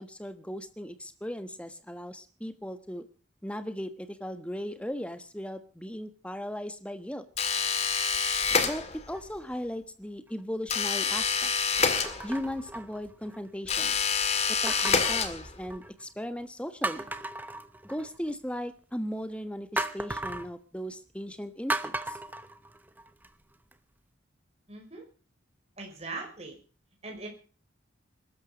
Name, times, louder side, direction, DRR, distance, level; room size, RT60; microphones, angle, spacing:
voice 1, 0.0-3.1 3.4-7.2 8.6-11.5 12.2-13.9 14.5-17.1 17.8-22.2, equal, 5° left, 10 dB, 1.3 m, -37 dB
sound 1, 7.4-9.2 10.7-12.6 13.7-15.7, left 5 dB, 35° left, 1.9 m, -27 dB
sound 2, 9.1-9.6 10.3-10.4 12.0-13.5 14.7-16.0 16.4-16.5 16.8-18.3 19.8-20.5 21.7-23.3 23.7-23.8, right 2 dB, 10° right, 0.9 m, -36 dB
voice 2, 24.7-25.0 25.8-26.6 27.0-27.3, right 3 dB, 35° right, 1 dB, 5.7 m, -40 dB
21.5 x 13.0 x 5.2 m, 0.38 s
head